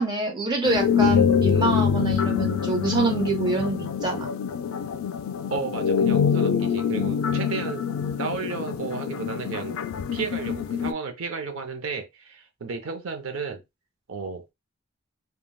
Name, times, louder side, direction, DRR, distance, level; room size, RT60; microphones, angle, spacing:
voice 1, 0.0-4.3, right 3 dB, 20° right, 0.6 m, -26 dB
sound 1, 0.6-10.9, left 7 dB, 85° left, 0.3 m, -25 dB
voice 2, 5.5-7.8 8.2-9.8 10.1-13.6 14.1-14.5, right 5 dB, 75° right, 0.6 m, -33 dB
3.3 x 2.2 x 2.2 m
head